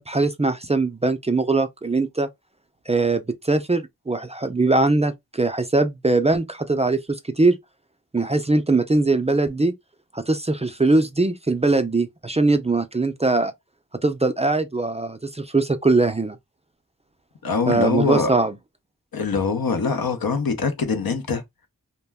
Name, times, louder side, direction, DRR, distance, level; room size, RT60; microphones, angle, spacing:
voice 1, 0.0-2.3 2.9-7.6 8.1-9.7 10.1-13.5 14.0-16.4 17.7-18.6, right 3 dB, 20° right, 0.3 m, -21 dB
voice 2, 17.4-18.3 19.1-21.4, left 5 dB, 90° left, 0.7 m, -23 dB
2.2 x 2.1 x 3.4 m
wide cardioid pair, 55°, 34 cm